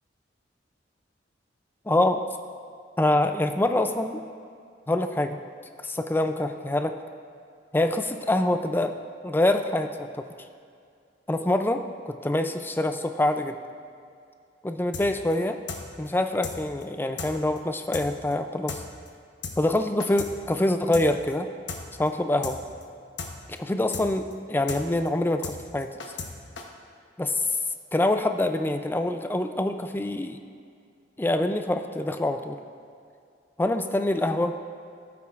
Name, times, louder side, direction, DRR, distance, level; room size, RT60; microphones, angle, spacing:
voice 1, 1.9-2.2 3.0-4.2 4.9-5.4 5.8-6.9 7.7-8.9 9.2-10.2 11.3-13.6 14.6-15.6 16.0-18.8 19.6-21.5 22.0-22.6 23.6-25.9 27.2-27.4 27.9-30.4 31.2-32.6 33.6-34.6, left 1 dB, 10° left, 7 dB, 0.4 m, -25 dB
sound 1, 14.9-15.1 15.3-15.4 15.7-15.8 16.1-16.2 16.4-16.6 16.8-16.9 17.2-17.3 17.6-17.7 17.9-18.1 18.3-18.4 18.7-18.8 19.1-19.2 19.4-19.6 19.8-20.3 20.6-20.7 20.9-21.1 21.3-21.4 21.7-21.8 22.1-22.2 22.4-22.6 22.8-22.9 23.2-23.3 23.6-23.7 23.9-24.1 24.3-24.4 24.7-24.8 25.1-25.2 25.4-25.6 25.8-26.3 26.6-26.7, left 5 dB, 90° left, 1.0 m, -35 dB
14.5 x 8.5 x 2.5 m, 2.3 s
head